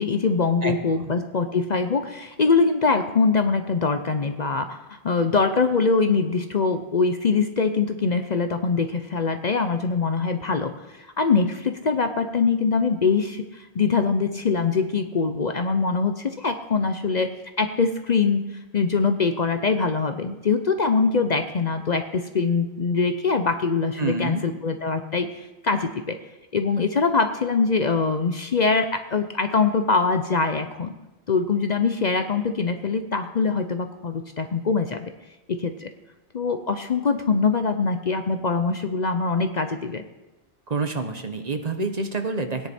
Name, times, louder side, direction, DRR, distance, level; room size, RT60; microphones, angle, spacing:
voice 1, 0.0-17.3 17.6-18.4 18.7-26.2 26.5-30.9 31.3-35.1 35.5-35.9 36.3-40.0, left 4 dB, 45° left, 8 dB, 0.7 m, -23 dB
voice 2, 0.6-1.1 24.0-24.4 40.7-42.7, right 3 dB, 40° right, 6 dB, 1.1 m, -28 dB
16.5 x 10.0 x 4.3 m, 1.1 s
omnidirectional pair, 1.1 m